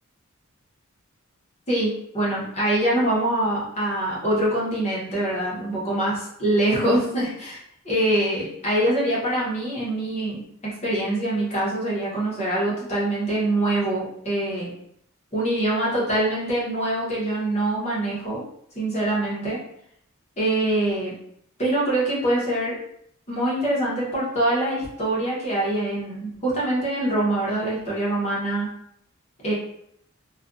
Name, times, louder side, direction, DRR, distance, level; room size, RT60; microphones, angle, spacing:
voice 1, 1.7-6.1 6.4-10.4 10.8-14.7 15.3-18.4 18.7-19.6 20.4-21.1 21.6-22.8 23.3-28.7 29.4-29.5, right 1 dB, 30° left, -6 dB, 1.0 m, -24 dB
2.4 x 2.4 x 2.5 m, 0.71 s
head